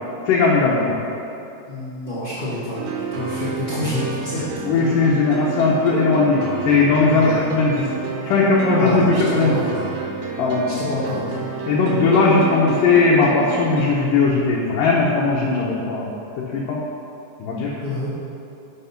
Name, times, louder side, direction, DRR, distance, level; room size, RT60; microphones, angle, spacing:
voice 1, 0.3-0.9 4.6-7.9 8.2-9.6 10.4-10.6 11.7-16.8 17.4-17.7, left 4 dB, 75° left, -5 dB, 2.6 m, -18 dB
voice 2, 1.7-4.5 7.1-7.4 8.8-9.9 10.7-11.4 17.8-18.1, left 1 dB, 40° left, -11 dB, 0.7 m, -27 dB
sound 1, 2.7-13.9, right 4 dB, 85° right, 2.7 m, -29 dB
10.5 x 5.4 x 5.8 m, 2.8 s
omnidirectional pair, 4.1 m